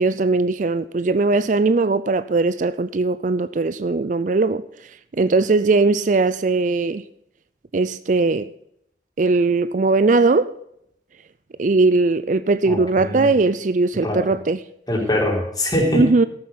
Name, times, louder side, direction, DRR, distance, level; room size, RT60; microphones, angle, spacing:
voice 1, 0.0-4.6 5.2-7.0 7.7-8.5 9.2-10.5 11.6-14.6 15.9-16.3, right 3 dB, 45° right, 0.4 m, -19 dB
voice 2, 12.6-13.3 14.0-14.2 14.9-16.0, left 1 dB, 25° left, 3.8 m, -22 dB
14.0 x 7.8 x 5.6 m
head